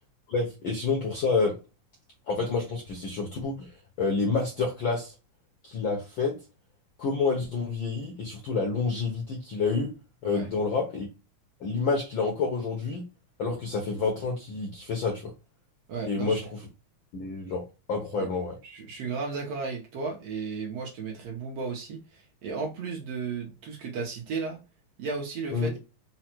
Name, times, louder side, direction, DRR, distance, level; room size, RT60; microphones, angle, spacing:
voice 1, 0.3-1.6 2.3-3.7 4.0-5.1 5.6-6.4 7.0-9.9 10.2-11.1 11.6-13.0 13.4-15.3 16.0-16.7 17.1-17.6 17.9-18.6 25.5-25.7, left 4 dB, 70° left, 1.2 m, -28 dB
voice 2, 15.9-16.4 18.6-24.6 25.0-25.8, right 4 dB, 65° right, 1.7 m, -34 dB
5.0 x 2.2 x 4.3 m
omnidirectional pair, 3.5 m